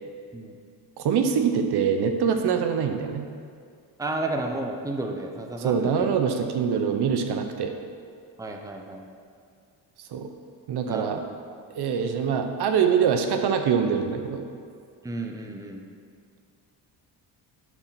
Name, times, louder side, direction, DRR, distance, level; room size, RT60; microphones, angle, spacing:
voice 1, 1.0-3.2 5.6-7.7 10.1-10.3 10.7-11.2 11.7-14.4, right 7 dB, 60° right, 6 dB, 0.8 m, -24 dB
voice 2, 4.0-6.1 8.4-9.1 10.8-11.2 15.0-15.8, right 2 dB, 5° right, 3 dB, 0.8 m, -32 dB
10.5 x 4.0 x 5.8 m, 2.2 s
cardioid pair, 90°, 45 cm